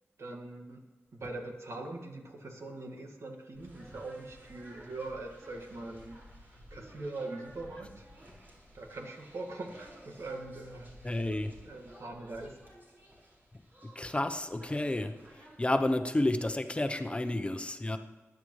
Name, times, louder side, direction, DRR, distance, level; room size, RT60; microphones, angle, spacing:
voice 1, 0.2-0.8 1.2-6.2 6.5-8.1 8.7-10.9 11.6-12.6, right 2 dB, 75° right, 2 dB, 1.9 m, -42 dB
sound 1, 3.5-15.8, equal, 45° right, 5.3 m, -54 dB
voice 2, 11.0-11.5 13.8-15.1 15.6-18.0, left 1 dB, 25° left, 7 dB, 0.8 m, -30 dB
22.0 x 10.5 x 3.2 m, 1.3 s
wide cardioid pair, 90°, 5 cm